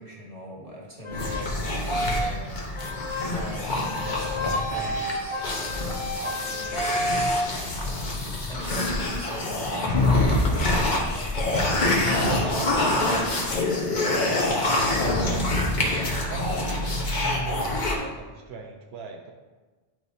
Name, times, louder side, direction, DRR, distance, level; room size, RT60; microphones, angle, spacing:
voice 1, 0.0-2.6 3.2-7.3 7.8-11.3, equal, 35° right, -3 dB, 1.6 m, -41 dB
sound 1, 1.0-1.4 1.9-2.4 2.8-3.3 3.8-7.4, equal, 30° left, 1.1 m, -30 dB
sound 2, 1.1-18.0, left 2 dB, 50° left, 1.1 m, -26 dB
voice 2, 12.2-15.6 16.3-16.9 17.1-19.3, right 4 dB, 85° right, 2 dB, 0.9 m, -37 dB
10.5 x 4.8 x 2.7 m, 1.3 s
omnidirectional pair, 1.0 m